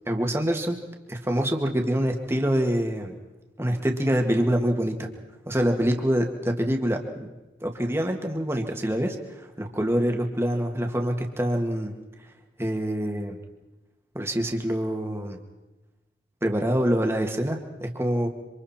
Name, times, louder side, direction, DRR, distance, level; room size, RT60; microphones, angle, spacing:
voice 1, 0.1-0.8 1.1-3.1 3.6-5.0 5.5-7.3 7.6-9.2 9.6-11.9 12.6-13.4 14.1-15.4 16.4-18.3, equal, 15° right, 3 dB, 2.0 m, -25 dB
27.0 x 25.5 x 4.4 m, 1.1 s
head